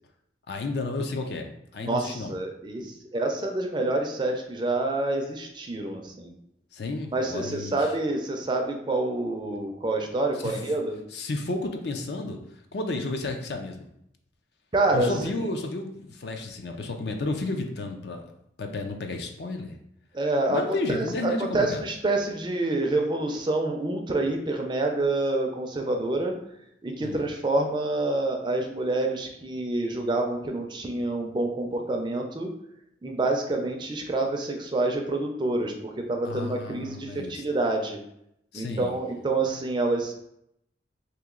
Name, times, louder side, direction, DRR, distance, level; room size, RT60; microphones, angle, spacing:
voice 1, 0.5-1.5 1.7-2.3 6.7-7.9 10.4-10.6 11.1-12.4 12.7-13.9 14.9-18.3 18.6-19.8 20.5-21.8 27.0-27.3 36.2-37.4 38.5-38.9, left 2 dB, 60° left, 4 dB, 0.5 m, -32 dB
voice 2, 1.9-6.3 7.1-11.0 14.7-15.1 20.1-20.6 20.9-26.4 26.8-32.5 33.0-38.0 38.5-40.1, right 2 dB, 25° right, 3 dB, 0.4 m, -27 dB
2.9 x 2.9 x 3.6 m, 0.76 s
head